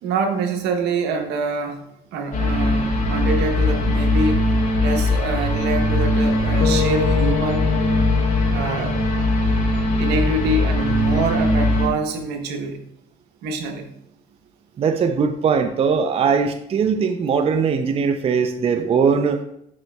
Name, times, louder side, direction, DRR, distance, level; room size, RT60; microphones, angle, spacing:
voice 1, 0.0-1.8 2.1-4.5 4.8-7.7 8.5-8.9 10.0-12.8 13.4-13.9, right 3 dB, 85° right, 5 dB, 1.0 m, -25 dB
sound 1, 2.3-11.9, left 1 dB, 50° left, 2.3 m, -20 dB
sound 2, 6.6-10.9, left 6 dB, 70° left, 0.7 m, -27 dB
voice 2, 14.8-19.4, right 6 dB, 35° right, 7 dB, 0.5 m, -20 dB
11.0 x 4.0 x 2.2 m, 0.75 s
cardioid pair, 110°, 17 cm